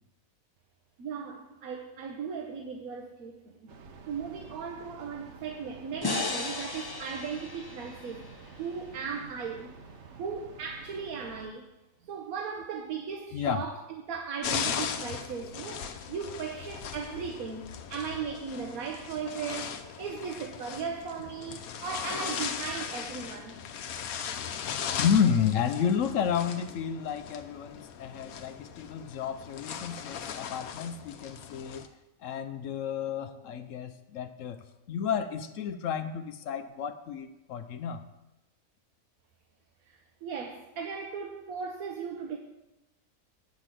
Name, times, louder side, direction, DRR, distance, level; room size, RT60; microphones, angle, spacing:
voice 1, 1.0-3.7 4.1-8.3 8.6-9.7 10.2-11.7 12.0-23.6 39.9-42.4, right 6 dB, 85° right, 4 dB, 1.3 m, -37 dB
Train, 3.7-11.5, right 4 dB, 60° right, 1.1 m, -50 dB
sound 1, 6.0-9.2, left 3 dB, 25° left, 0.5 m, -36 dB
voice 2, 13.3-13.6 23.9-31.8 32.2-34.6 34.9-38.0, left 7 dB, 70° left, 10 dB, 0.9 m, -31 dB
sound 2, 14.4-31.9, left 7 dB, 90° left, 1.2 m, -38 dB
8.2 x 5.9 x 7.5 m, 0.98 s
omnidirectional pair, 1.5 m